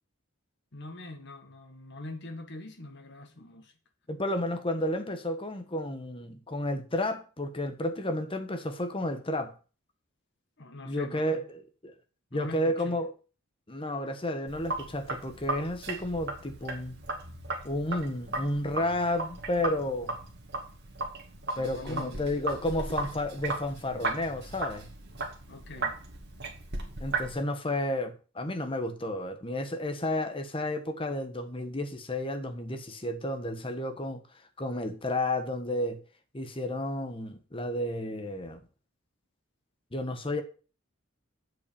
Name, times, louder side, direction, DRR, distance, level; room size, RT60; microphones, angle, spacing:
voice 1, 0.7-3.7 10.6-11.5 12.3-13.0 21.6-22.3 25.5-26.0, left 2 dB, 60° left, 1.7 m, -43 dB
voice 2, 4.1-9.5 10.8-11.9 12.3-13.1 13.7-17.0 17.6-20.2 21.6-24.9 27.0-34.2 34.6-36.0 36.3-38.6 39.9-40.4, left 1 dB, 25° left, 1.2 m, -32 dB
Sink (filling or washing), 14.5-27.3, right 3 dB, 55° right, 2.2 m, -36 dB
7.7 x 5.7 x 6.9 m
head